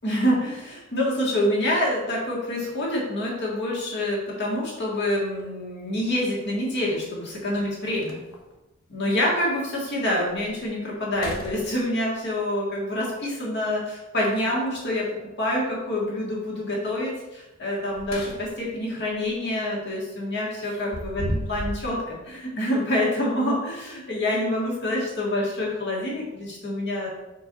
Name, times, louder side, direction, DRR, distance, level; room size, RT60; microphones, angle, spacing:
voice 1, 0.0-8.2 8.9-15.1 15.4-27.1, left 1 dB, 55° left, -4 dB, 1.8 m, -26 dB
sound 1, 5.3-5.4 7.2-7.3 7.7-7.8 8.0-8.6 9.1-9.2 9.8-9.9 10.3-10.6 11.1-12.2 14.3-14.9 17.7-18.7 19.1-19.3 20.6-21.9, equal, 80° left, 1.0 m, -35 dB
6.0 x 4.7 x 4.0 m, 1.0 s
head